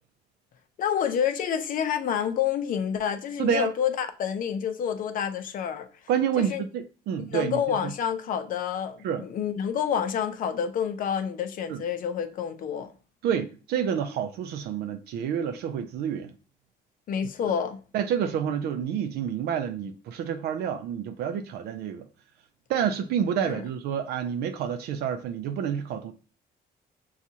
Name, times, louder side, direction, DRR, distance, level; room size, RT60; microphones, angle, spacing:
voice 1, 0.8-5.9 6.4-6.6 7.3-12.9 17.1-17.8 23.4-23.6, left 8 dB, 55° left, 0.6 m, -28 dB
voice 2, 3.4-3.7 6.1-7.9 9.0-9.3 11.7-11.8 13.2-16.3 17.4-17.5 17.9-22.1 22.7-26.1, right 8 dB, 70° right, 0.4 m, -28 dB
6.0 x 2.4 x 2.8 m
cardioid pair, 110°, 17 cm